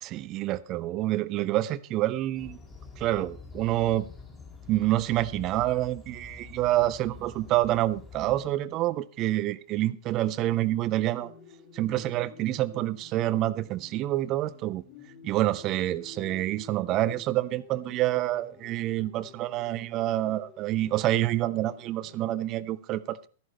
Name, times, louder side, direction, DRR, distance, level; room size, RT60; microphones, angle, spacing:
voice 1, 0.0-2.6 3.0-4.1 4.7-11.3 11.7-14.8 15.2-23.3, right 15 dB, 35° right, 0.7 m, -27 dB
sound 1, 2.3-8.5, left 5 dB, 15° left, 4.0 m, -47 dB
sound 2, 10.3-22.3, left 5 dB, 40° left, 2.6 m, -52 dB
14.0 x 11.0 x 4.2 m
figure-of-eight pair, 100°, 0 cm